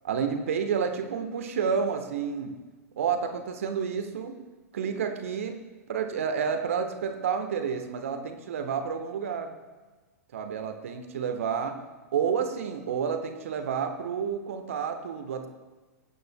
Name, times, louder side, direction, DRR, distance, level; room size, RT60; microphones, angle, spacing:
voice 1, 0.0-2.6 3.0-4.4 4.7-5.6 5.9-9.5 10.3-11.8 12.1-15.5, right 6 dB, 60° right, 6 dB, 1.2 m, -30 dB
21.0 x 9.3 x 2.2 m, 1.3 s
figure-of-eight pair, 95°, 8 cm